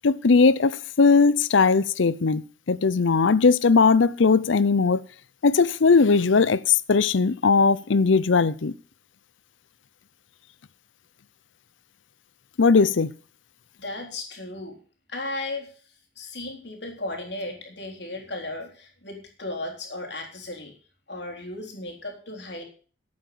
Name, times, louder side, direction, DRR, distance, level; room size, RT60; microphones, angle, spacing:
voice 1, 0.0-0.7 1.0-2.4 2.7-5.0 5.4-8.7 12.6-13.1, left 4 dB, 80° left, 0.6 m, -19 dB
voice 2, 13.8-14.8 15.1-15.7 16.2-20.7 21.1-22.6, left 2 dB, 60° left, 3.7 m, -35 dB
11.5 x 8.8 x 6.8 m
head